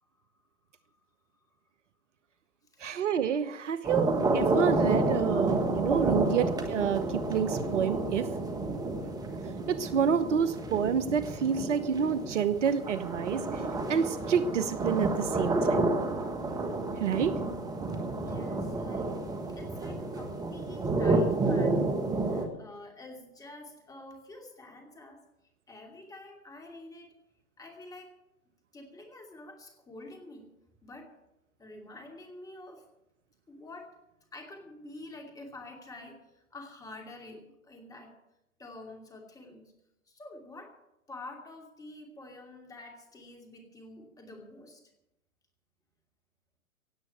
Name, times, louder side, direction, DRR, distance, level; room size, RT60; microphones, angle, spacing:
voice 1, 2.8-8.3 9.7-13.4 13.9-16.0 17.0-17.4, right 7 dB, 55° right, 14 dB, 1.0 m, -28 dB
sound 1, 3.8-22.5, right 2 dB, 10° right, 1.3 m, -30 dB
voice 2, 18.1-19.1 19.6-25.2 25.7-27.1 27.6-28.1 28.7-30.5 30.8-31.1 31.6-32.8 33.5-34.0 34.3-38.1 38.6-39.6 40.1-40.7 41.1-44.8, left 2 dB, 10° left, 2 dB, 2.6 m, -48 dB
17.0 x 8.0 x 8.5 m, 0.86 s
hypercardioid pair, 130°, 43 cm